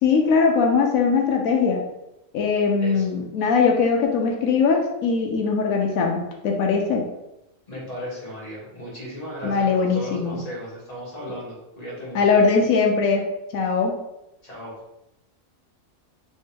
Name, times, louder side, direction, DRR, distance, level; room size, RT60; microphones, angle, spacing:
voice 1, 0.0-1.8 2.3-7.0 9.4-10.4 12.1-13.3 13.5-14.0, left 5 dB, 90° left, 1 dB, 1.1 m, -20 dB
voice 2, 7.7-12.2 14.4-14.8, equal, 30° left, -6 dB, 1.6 m, -36 dB
3.4 x 2.8 x 4.5 m, 0.89 s
omnidirectional pair, 1.4 m